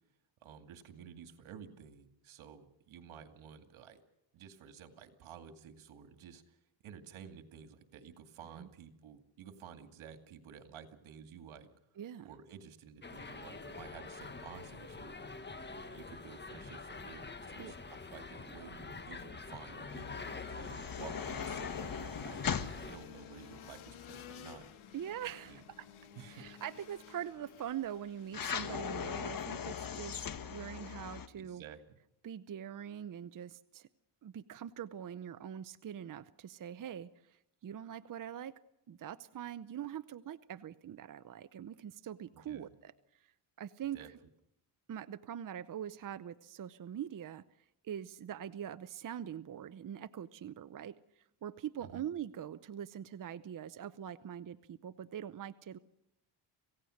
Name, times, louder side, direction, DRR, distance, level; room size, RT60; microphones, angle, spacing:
voice 1, 0.4-4.0 4.3-6.6 6.8-11.7 12.2-15.2 15.7-20.3 20.6-24.6 25.4-25.6 26.2-26.4 31.4-32.0 42.3-42.7 43.9-44.1 51.8-52.0, right 7 dB, 80° right, 7 dB, 2.4 m, -52 dB
voice 2, 12.0-12.3 17.6-17.7 24.9-25.9 26.3-31.6 32.2-33.9 34.2-38.5 38.9-42.9 43.2-43.3 43.6-44.0 44.9-47.4 47.8-55.8, right 9 dB, 40° right, 12 dB, 0.8 m, -43 dB
sound 1, 13.0-23.0, left 3 dB, 20° left, 1.5 m, -46 dB
sound 2, 19.5-29.3, left 9 dB, 80° left, 2.4 m, -55 dB
sound 3, 19.9-24.4 28.3-31.3, left 7 dB, 45° left, 1.5 m, -40 dB
27.0 x 17.0 x 6.5 m, 0.83 s
cardioid pair, 100°, 47 cm